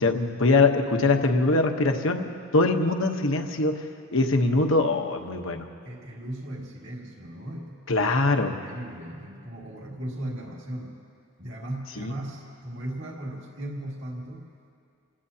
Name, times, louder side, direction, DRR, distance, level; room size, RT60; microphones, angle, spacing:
voice 1, 0.0-3.7 4.1-5.7 7.9-8.6 12.0-12.1, left 2 dB, 70° left, 4 dB, 1.1 m, -23 dB
voice 2, 5.8-7.8 8.4-11.0 11.4-14.5, right 1 dB, 55° right, -3 dB, 2.1 m, -37 dB
27.0 x 17.5 x 2.8 m, 2.4 s
head